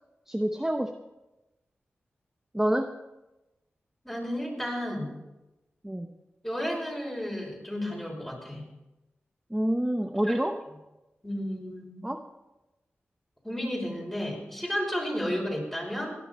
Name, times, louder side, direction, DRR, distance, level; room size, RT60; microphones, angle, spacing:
voice 1, 0.3-0.9 2.5-2.9 5.8-6.1 9.5-10.6 12.0-12.2 15.3-15.4, right 1 dB, 10° right, 6 dB, 0.8 m, -27 dB
voice 2, 4.0-5.2 6.4-8.7 10.2-10.4 11.2-12.1 13.4-16.2, equal, 10° left, -1 dB, 6.1 m, -32 dB
17.0 x 11.0 x 4.2 m, 1.0 s
cardioid pair, 45°, 4 cm